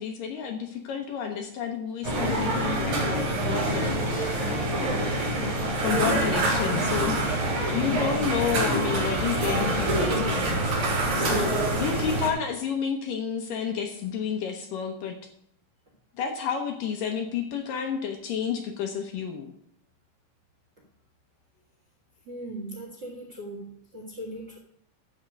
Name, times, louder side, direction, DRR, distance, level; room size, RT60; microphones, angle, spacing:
voice 1, 0.0-4.4 4.7-5.0 5.8-10.7 11.1-15.2 16.2-19.5, left 7 dB, 70° left, 4 dB, 2.3 m, -31 dB
sound 1, 2.0-12.3, right 1 dB, 60° right, 5.0 m, -26 dB
voice 2, 22.3-23.7 23.9-24.6, right 1 dB, 40° right, 0 dB, 1.6 m, -38 dB
13.0 x 4.4 x 7.6 m, 0.70 s
omnidirectional pair, 4.6 m